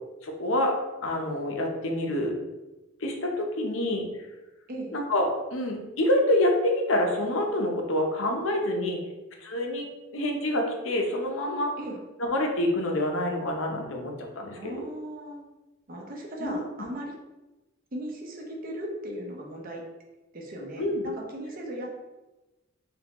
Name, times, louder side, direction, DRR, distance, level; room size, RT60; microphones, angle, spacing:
voice 1, 0.2-0.7 1.0-2.3 3.0-4.1 4.9-9.0 9.4-9.9 10.1-11.7 12.2-14.8 16.4-16.6 20.8-21.0, left 1 dB, 75° left, 1 dB, 0.7 m, -27 dB
voice 2, 14.6-15.4 15.9-17.1 17.9-19.8 20.3-21.9, right 1 dB, 45° right, 0 dB, 0.7 m, -37 dB
3.6 x 3.2 x 3.0 m, 1.1 s
head